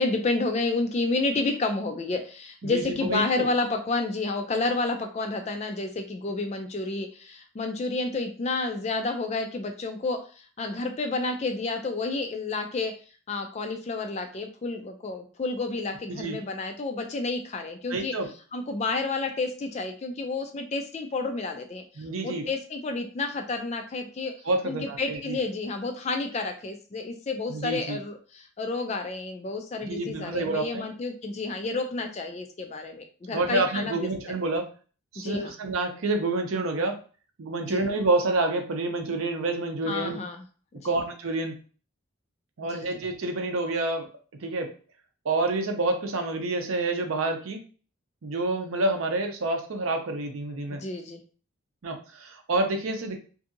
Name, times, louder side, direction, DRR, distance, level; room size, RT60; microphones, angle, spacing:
voice 1, 0.0-10.2 10.6-12.9 13.3-18.1 18.5-21.8 22.2-24.3 24.6-34.3 35.2-35.5 37.6-37.8 39.9-40.4 40.8-41.0 42.7-42.9 50.7-51.2, left 3 dB, 30° left, 6 dB, 0.3 m, -30 dB
voice 2, 2.6-3.5 16.1-16.4 17.9-18.3 22.0-22.5 24.4-25.4 27.5-28.0 29.8-30.8 33.3-34.7 35.1-37.0 37.4-40.2 40.8-41.5 42.6-44.1 44.4-44.7 45.2-47.6 48.2-50.8 51.8-53.2, right 2 dB, 75° right, 4 dB, 0.6 m, -28 dB
2.7 x 2.6 x 2.5 m, 0.38 s
head